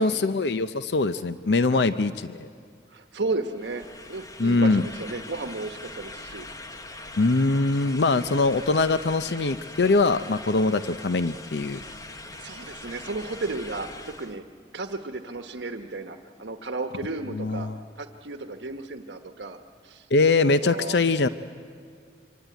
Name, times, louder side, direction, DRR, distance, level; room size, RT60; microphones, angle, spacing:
voice 1, 0.0-2.5 4.4-4.8 7.2-11.8 17.3-17.8 20.1-21.3, left 3 dB, 65° left, 12 dB, 0.6 m, -22 dB
voice 2, 2.9-6.5 8.1-8.5 11.7-11.9 12.4-14.4 14.7-17.7 18.0-19.6 19.8-20.1 20.6-21.0, right 3 dB, 85° right, 7 dB, 1.1 m, -34 dB
sound 1, 3.5-14.4, left 2 dB, 20° left, 1.2 m, -42 dB
25.5 x 25.0 x 9.3 m, 2.3 s
head